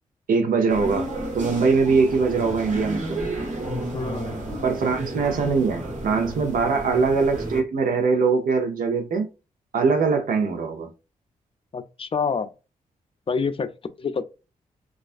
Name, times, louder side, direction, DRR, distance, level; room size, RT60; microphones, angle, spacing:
voice 1, 0.3-1.1 1.3-3.2 4.6-9.3 9.7-10.9, right 4 dB, 75° right, 0.6 m, -22 dB
sound 1, 0.7-7.6, right 1 dB, 60° right, 1.2 m, -32 dB
voice 2, 3.9-4.4 6.6-6.8 11.7-12.5 13.3-14.2, left 5 dB, 40° left, 0.4 m, -28 dB
2.3 x 2.2 x 2.4 m
cardioid pair, 50°, 15 cm